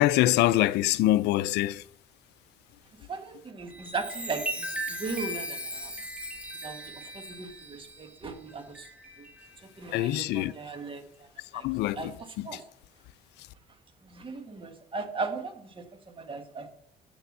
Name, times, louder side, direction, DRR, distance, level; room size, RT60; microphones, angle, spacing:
voice 1, 0.0-1.8 9.9-10.5 11.5-12.6, left 15 dB, 80° left, 0.4 m, -25 dB
voice 2, 3.0-5.9 6.6-8.9 9.2-9.3 9.8-11.3 11.5-11.7 11.9-12.1 12.4-12.6 14.0-16.7, right 4 dB, 30° right, 1.6 m, -37 dB
Chime, 3.6-9.6 10.1-10.4, right 1 dB, 10° right, 1.5 m, -38 dB
7.9 x 6.9 x 6.1 m
cardioid pair, 110°, 17 cm